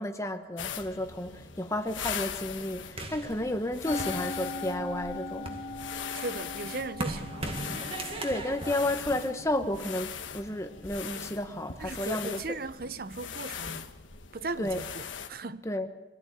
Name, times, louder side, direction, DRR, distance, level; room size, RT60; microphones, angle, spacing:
voice 1, 0.0-5.6 8.2-12.4 14.6-14.8 15.6-15.9, left 1 dB, 15° left, 1.2 m, -32 dB
sound 1, 0.6-15.3, left 7 dB, 85° left, 1.4 m, -40 dB
sound 2, 3.0-4.8 5.3-9.9, right 2 dB, 30° right, 1.9 m, -39 dB
Musical instrument, 3.9-10.3, left 3 dB, 40° left, 1.5 m, -41 dB
voice 2, 6.1-7.5 11.8-13.9 14.3-15.7, right 3 dB, 50° right, 0.8 m, -37 dB
24.5 x 16.5 x 8.7 m
head